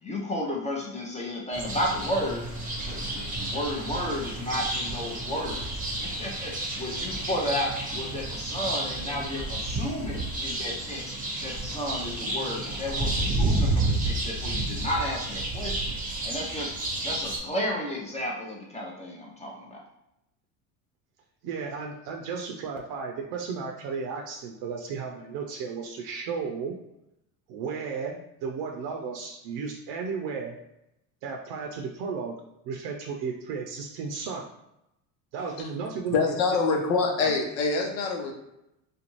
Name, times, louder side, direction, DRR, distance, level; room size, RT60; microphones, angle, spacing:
voice 1, 0.0-2.5 2.8-11.1 11.4-16.0 16.2-16.7 17.0-19.8, left 1 dB, 15° left, -2 dB, 0.6 m, -33 dB
sound 1, 1.5-17.4, right 2 dB, 20° right, 0.7 m, -31 dB
voice 2, 21.4-26.7 27.5-30.5 31.2-32.3 32.6-34.4 35.3-36.2 36.7-36.8 37.2-37.4, right 5 dB, 65° right, 2 dB, 0.5 m, -34 dB
voice 3, 36.1-38.3, left 4 dB, 90° left, 2 dB, 0.7 m, -25 dB
2.5 x 2.2 x 3.0 m, 0.86 s
supercardioid pair, 95°, 41 cm